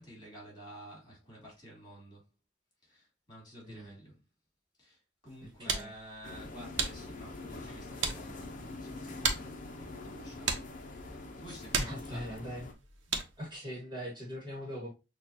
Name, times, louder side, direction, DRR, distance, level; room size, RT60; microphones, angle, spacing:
voice 1, 0.0-2.3 2.8-4.2 4.8-12.4, equal, 20° left, 2.7 m, -51 dB
sound 1, 5.3-13.5, right 5 dB, 90° right, 0.9 m, -38 dB
voice 2, 5.6-5.9 11.7-12.7 13.4-14.9, equal, 25° right, 1.5 m, -41 dB
sound 2, 6.2-12.7, left 2 dB, 45° left, 0.7 m, -44 dB
6.4 x 2.4 x 2.7 m
head